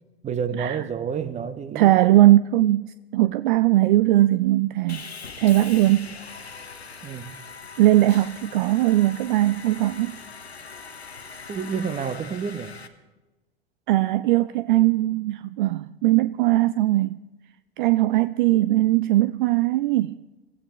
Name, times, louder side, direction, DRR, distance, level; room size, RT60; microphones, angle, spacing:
voice 1, 0.2-2.0 7.0-7.3 11.5-12.7, right 7 dB, 20° right, 1.1 m, -29 dB
voice 2, 1.7-5.1 5.4-6.2 7.8-10.2 13.9-17.2 17.8-20.2, right 15 dB, 55° right, 0.4 m, -20 dB
Sawing, 4.9-12.9, left 5 dB, 85° left, 1.1 m, -41 dB
26.5 x 14.5 x 3.2 m
figure-of-eight pair, 85°, 31 cm